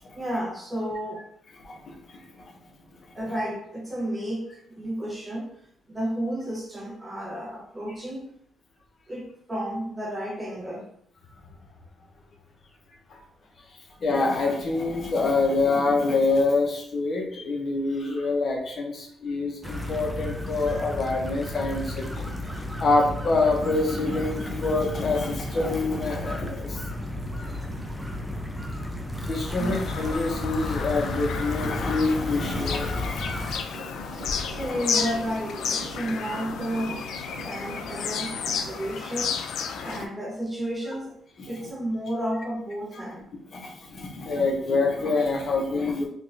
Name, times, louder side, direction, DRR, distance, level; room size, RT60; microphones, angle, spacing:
voice 1, 0.1-1.3 3.1-4.5 4.8-5.5 5.9-8.3 9.1-10.9 29.6-29.8 34.1-37.0 37.4-39.4 39.8-41.2 41.5-43.2, equal, 20° right, -2 dB, 1.1 m, -32 dB
voice 2, 1.6-2.5 13.1-13.2 13.7-22.3 22.8-26.8 29.2-35.1 37.5-37.6 39.7-40.1 41.4-41.7 43.5-46.1, left 3 dB, 50° left, 1 dB, 0.7 m, -26 dB
sound 1, 19.6-33.6, left 1 dB, ahead, 0.6 m, -33 dB
Bird vocalization bird call bird song, 29.6-40.1, left 6 dB, 75° left, 0.3 m, -32 dB
sound 2, 33.7-38.7, right 4 dB, 70° right, 0.5 m, -42 dB
3.5 x 2.9 x 2.6 m, 0.65 s
cardioid pair, 90°, 0 cm